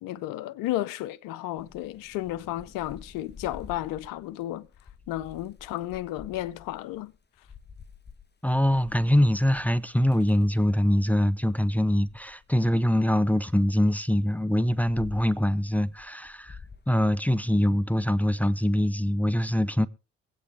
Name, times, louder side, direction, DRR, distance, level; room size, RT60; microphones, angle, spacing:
voice 1, 0.0-4.7 5.1-7.1, left 14 dB, 70° left, 0.6 m, -33 dB
Thunder / Rain, 1.6-11.3 11.7-13.7 14.3-19.1, left 6 dB, 30° left, 1.3 m, -50 dB
voice 2, 8.4-16.6 16.9-19.9, left 1 dB, 5° left, 0.7 m, -23 dB
23.5 x 8.3 x 3.5 m
hypercardioid pair, 45°, 34 cm